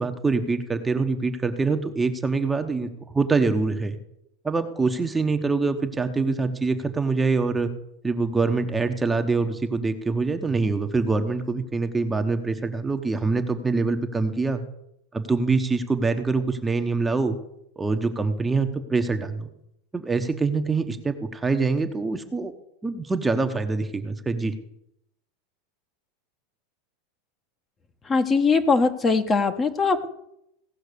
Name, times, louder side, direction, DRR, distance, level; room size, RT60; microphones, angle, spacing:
voice 1, 0.0-4.0 4.4-7.7 8.0-14.6 15.1-17.4 17.8-19.5 19.9-22.5 22.8-24.5, right 4 dB, 10° right, 6 dB, 1.0 m, -24 dB
voice 2, 28.1-30.1, left 4 dB, 20° left, 8 dB, 1.1 m, -21 dB
16.5 x 5.9 x 6.8 m, 0.79 s
supercardioid pair, 130°, 0 cm